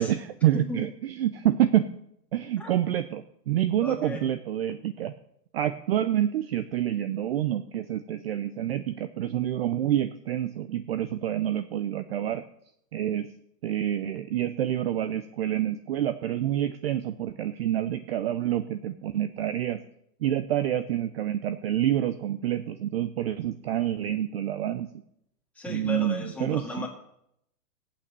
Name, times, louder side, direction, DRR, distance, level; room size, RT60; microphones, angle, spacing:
voice 1, 0.0-1.8 2.3-5.1 5.5-12.4 12.9-13.3 13.6-19.8 20.2-24.9 25.7-26.9, right 11 dB, 40° right, 11 dB, 0.6 m, -27 dB
voice 2, 3.8-4.2 25.6-26.9, left 2 dB, 5° left, -2 dB, 2.3 m, -35 dB
15.0 x 8.8 x 6.7 m, 0.76 s
hypercardioid pair, 150°, 48 cm